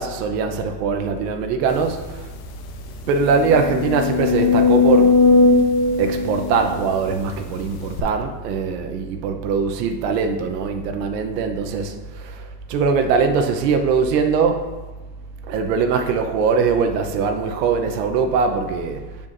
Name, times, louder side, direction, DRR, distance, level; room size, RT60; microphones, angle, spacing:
voice 1, 0.0-2.3 3.0-5.2 6.0-14.7 15.5-19.0, right 5 dB, 75° right, 0.9 m, -21 dB
sound 1, 2.0-2.1 2.4-2.5 3.1-7.3 8.0-8.1, left 4 dB, 60° left, 1.0 m, -18 dB
7.6 x 7.0 x 2.6 m
supercardioid pair, 175°, 48 cm